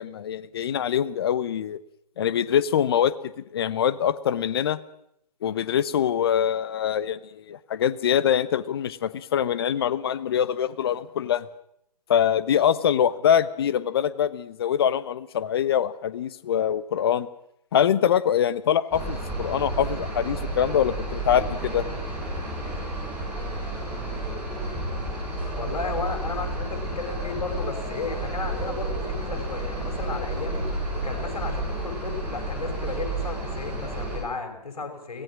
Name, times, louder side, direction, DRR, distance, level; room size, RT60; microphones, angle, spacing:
voice 1, 0.0-1.8 2.2-4.8 5.4-11.5 12.1-17.3 17.7-21.8, left 9 dB, 35° left, 15 dB, 1.1 m, -24 dB
sound 1, 18.9-34.2, right 2 dB, 5° right, 7.0 m, -31 dB
voice 2, 25.6-35.2, left 4 dB, 60° left, 4 dB, 6.1 m, -34 dB
23.0 x 19.0 x 6.3 m, 0.74 s
figure-of-eight pair, 135°, 21 cm